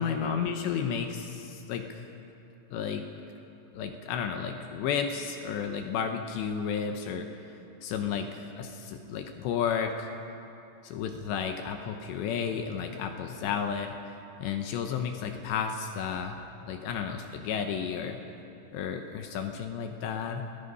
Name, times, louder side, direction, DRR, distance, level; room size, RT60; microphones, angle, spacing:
voice 1, 0.0-2.0 2.7-3.1 3.7-7.3 7.8-10.1 10.8-13.9 14.4-16.4 16.6-18.2 18.7-20.5, left 7 dB, 75° left, 5 dB, 2.9 m, -32 dB
28.0 x 19.0 x 5.5 m, 2.8 s
omnidirectional pair, 5.8 m